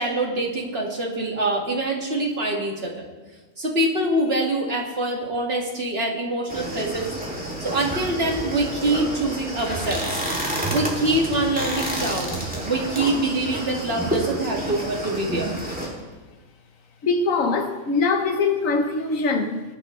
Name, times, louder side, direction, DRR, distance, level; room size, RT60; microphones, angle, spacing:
voice 1, 0.0-3.1 3.6-7.1 7.6-10.1 10.7-15.6, right 2 dB, 45° right, 2.4 m, -25 dB
sound 1, 6.5-15.9, right 1 dB, 5° right, 2.6 m, -29 dB
voice 2, 17.0-19.6, left 4 dB, 80° left, 1.5 m, -22 dB
21.0 x 11.0 x 3.2 m
omnidirectional pair, 1.4 m